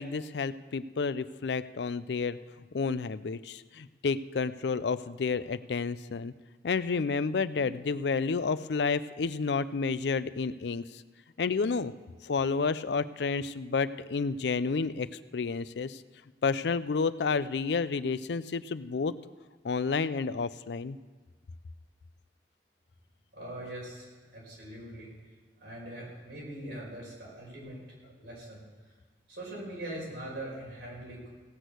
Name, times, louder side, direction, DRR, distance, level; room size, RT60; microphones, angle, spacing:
voice 1, 0.0-2.4 2.7-6.3 6.6-10.8 11.4-11.9 12.2-16.0 16.4-19.1 19.6-21.0, left 4 dB, 75° left, 15 dB, 0.5 m, -30 dB
voice 2, 23.3-25.1 25.6-27.8 28.2-28.6 29.3-31.3, right 1 dB, 85° right, -4 dB, 5.3 m, -42 dB
17.0 x 6.3 x 7.9 m, 1.4 s
head